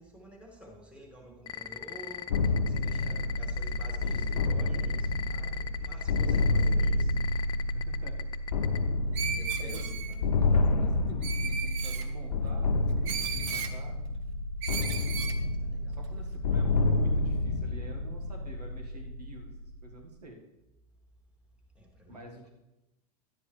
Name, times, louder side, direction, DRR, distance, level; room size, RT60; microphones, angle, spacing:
voice 1, 0.0-7.1 9.3-10.0 15.6-16.0 21.8-22.3, equal, 5° right, -1 dB, 2.4 m, -50 dB
sound 1, 1.5-8.8, left 10 dB, 20° left, 0.5 m, -38 dB
sound 2, 2.3-20.0, left 2 dB, 80° left, 0.5 m, -29 dB
voice 2, 7.7-8.2 9.6-12.8 13.2-14.0 15.9-19.5 19.8-20.4 22.1-22.5, right 2 dB, 85° right, 2 dB, 1.7 m, -47 dB
Screech, 9.1-10.2 11.2-12.1 13.0-13.7 14.6-15.4, right 7 dB, 55° right, 0.9 m, -35 dB
11.0 x 9.8 x 3.3 m, 0.97 s
hypercardioid pair, 95°, 20 cm